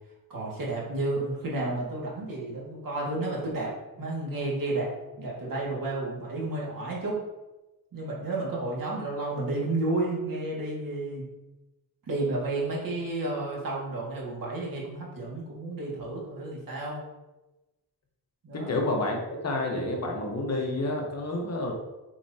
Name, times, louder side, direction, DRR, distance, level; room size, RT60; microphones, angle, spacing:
voice 1, 0.3-4.9 5.2-7.2 7.9-11.2 12.1-17.0 18.4-18.8, right 2 dB, 60° right, -4 dB, 2.1 m, -31 dB
voice 2, 18.5-21.7, left 2 dB, 45° left, 0 dB, 1.1 m, -29 dB
8.1 x 4.6 x 2.8 m, 1.1 s
wide cardioid pair, 145°, 37 cm